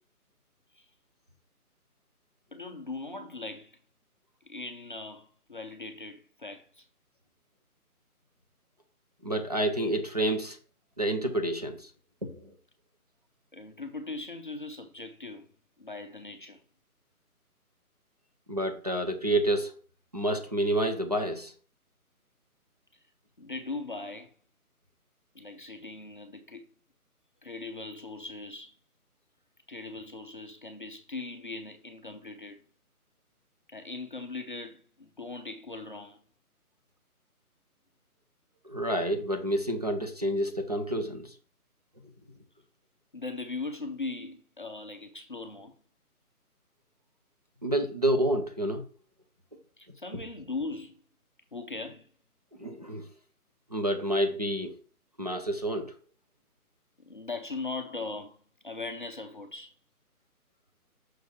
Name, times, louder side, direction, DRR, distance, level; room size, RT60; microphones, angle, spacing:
voice 1, 2.5-3.8 4.4-6.9 13.5-15.5 15.8-16.6 22.9-23.0 23.4-24.3 25.3-26.7 27.4-28.8 29.7-32.6 33.7-36.2 43.1-45.7 49.8-51.0 51.5-52.1 57.0-59.7, left 3 dB, 35° left, 0.6 m, -39 dB
voice 2, 9.2-10.6 11.0-11.9 12.2-12.5 18.5-19.7 20.1-21.5 38.6-41.3 47.6-48.8 52.6-53.0 53.7-54.7 55.2-56.0, right 1 dB, 25° right, 0.6 m, -29 dB
6.2 x 4.0 x 4.6 m
figure-of-eight pair, 150°, 45 cm